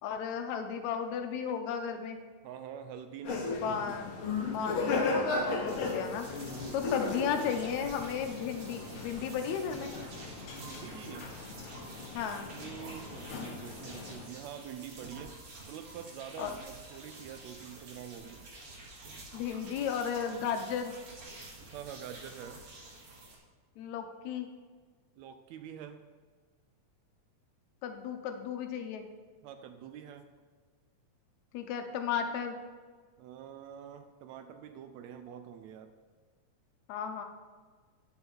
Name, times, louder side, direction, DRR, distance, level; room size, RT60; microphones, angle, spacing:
voice 1, 0.0-2.2 3.6-4.2 4.5-6.3 6.7-9.9 12.1-12.5 16.4-16.5 19.3-20.9 23.8-24.5 27.8-29.1 31.5-32.6 36.9-37.3, left 7 dB, 80° left, 6 dB, 1.9 m, -34 dB
voice 2, 2.4-3.8 6.5-6.8 10.5-11.3 12.5-15.4 15.7-18.4 21.7-22.6 25.2-26.0 29.4-30.3 33.2-35.9, right 9 dB, 80° right, 9 dB, 1.6 m, -46 dB
sound 1, 3.2-14.3, left 3 dB, 65° left, 1.3 m, -36 dB
sound 2, 5.7-23.4, right 2 dB, 55° right, 2.0 m, -49 dB
9.5 x 5.5 x 4.5 m, 1.5 s
omnidirectional pair, 3.5 m